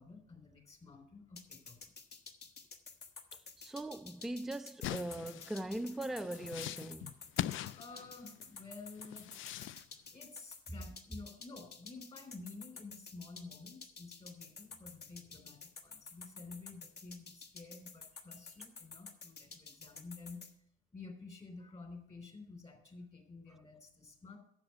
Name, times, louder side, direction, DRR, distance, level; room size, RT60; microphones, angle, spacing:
voice 1, 0.0-1.9 7.7-9.3 10.1-20.4 20.9-24.4, left 3 dB, 30° left, 3.2 m, -51 dB
sound 1, 1.4-20.5, left 4 dB, 55° left, 1.4 m, -51 dB
voice 2, 3.6-7.2, right 1 dB, ahead, 0.3 m, -40 dB
sound 2, 4.8-8.4 9.0-9.8, left 13 dB, 80° left, 0.4 m, -41 dB
10.0 x 7.2 x 5.7 m
cardioid pair, 90°, 20 cm